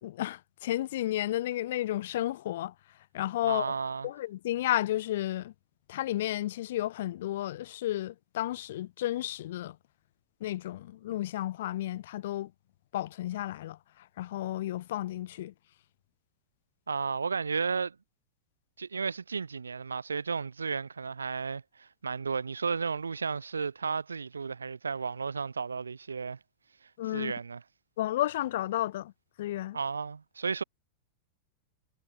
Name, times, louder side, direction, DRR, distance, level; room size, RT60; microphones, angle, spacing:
voice 1, 0.0-2.7 3.1-3.6 4.0-5.5 5.9-9.8 10.4-12.5 12.9-15.5 27.0-27.3 28.0-29.1 29.4-29.8, left 14 dB, 55° left, 3.3 m, -32 dB
voice 2, 3.4-4.1 16.9-18.0 18.8-26.4 27.1-27.6 29.7-30.6, right 5 dB, 75° right, 5.8 m, -33 dB
figure-of-eight pair, 90°, 0 cm